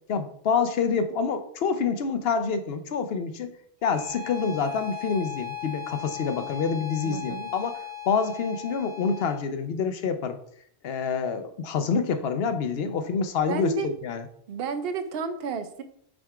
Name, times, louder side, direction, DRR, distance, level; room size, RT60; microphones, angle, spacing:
voice 1, 0.1-3.5 3.8-7.8 8.1-10.4 10.8-14.2, left 5 dB, 70° left, 9 dB, 0.8 m, -27 dB
Bowed string instrument, 3.8-9.4, left 10 dB, 85° right, 2.0 m, -38 dB
voice 2, 7.0-7.5 13.5-13.9 14.5-15.8, right 4 dB, 65° right, 10 dB, 0.9 m, -31 dB
6.2 x 3.5 x 4.8 m, 0.67 s
omnidirectional pair, 1.1 m